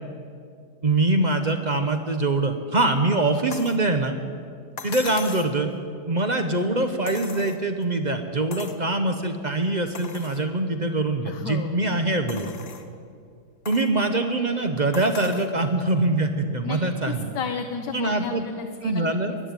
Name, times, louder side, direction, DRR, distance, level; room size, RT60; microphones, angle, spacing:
voice 1, 0.8-4.2 4.8-5.7 6.1-12.5 13.7-17.3 17.9-18.4 18.8-19.3, right 2 dB, 40° right, 7 dB, 0.7 m, -23 dB
sound 1, 3.5-3.8 4.8-5.6 7.1-7.9 8.5-8.8 9.4-9.5 9.9-10.4 11.1-11.2 12.3-12.9 13.7-13.9 14.9-15.5 16.8-16.9, left 6 dB, 60° left, 1.4 m, -39 dB
voice 2, 11.2-11.9 16.6-16.8 17.1-19.0 19.3-19.4, left 5 dB, 85° left, 6 dB, 1.4 m, -32 dB
14.0 x 10.5 x 9.5 m, 2.3 s
omnidirectional pair, 1.8 m